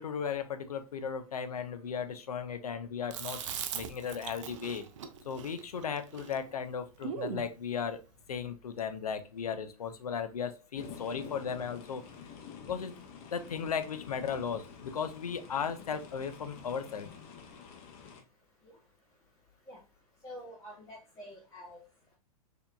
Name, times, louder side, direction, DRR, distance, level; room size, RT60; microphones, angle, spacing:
voice 1, 0.0-3.4 3.7-4.8 5.2-8.0 8.3-12.0 12.6-12.9 13.3-17.1, left 7 dB, 75° left, 9 dB, 0.6 m, -36 dB
Chewing mastication, 3.1-7.5, right 7 dB, 55° right, 0.5 m, -40 dB
sound 1, 10.8-18.2, left 6 dB, 35° left, 0.7 m, -48 dB
voice 2, 20.2-21.8, equal, 15° left, -7 dB, 1.5 m, -47 dB
4.4 x 2.8 x 2.3 m, 0.33 s
figure-of-eight pair, 105°, 19 cm